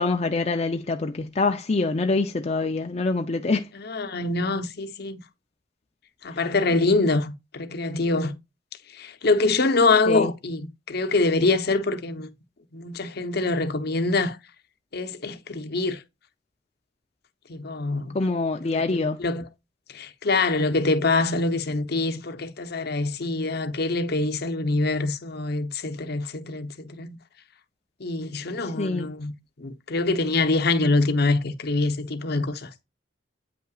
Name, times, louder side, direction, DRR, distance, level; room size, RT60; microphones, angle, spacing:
voice 1, 0.0-3.7 10.1-10.3 18.1-19.2 28.8-29.1, left 3 dB, 35° left, 0.6 m, -25 dB
voice 2, 3.7-5.2 6.2-8.3 9.0-12.3 12.7-14.4 14.9-16.0 17.5-18.2 18.5-19.5 19.9-27.2 28.0-32.7, left 3 dB, 60° left, 0.9 m, -25 dB
8.8 x 5.6 x 2.4 m
head